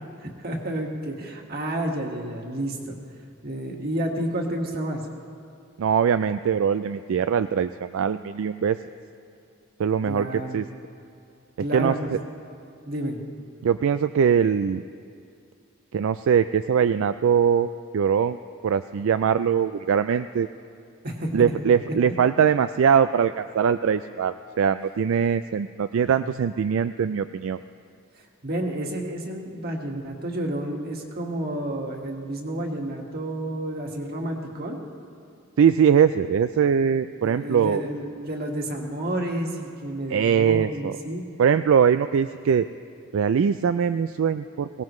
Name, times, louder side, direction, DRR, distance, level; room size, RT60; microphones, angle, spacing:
voice 1, 0.2-3.0 3.4-5.0 10.0-10.6 11.6-12.1 12.9-13.2 21.0-21.7 26.1-26.3 28.2-34.8 37.2-41.2, right 1 dB, 45° right, 1 dB, 1.8 m, -30 dB
voice 2, 5.8-8.8 9.8-10.6 11.7-12.2 13.6-14.8 15.9-18.4 18.6-20.5 21.3-27.6 35.6-37.8 40.1-40.9 41.4-42.7 43.1-44.8, right 7 dB, 70° right, 11 dB, 0.3 m, -22 dB
23.0 x 18.0 x 3.2 m, 2.4 s
head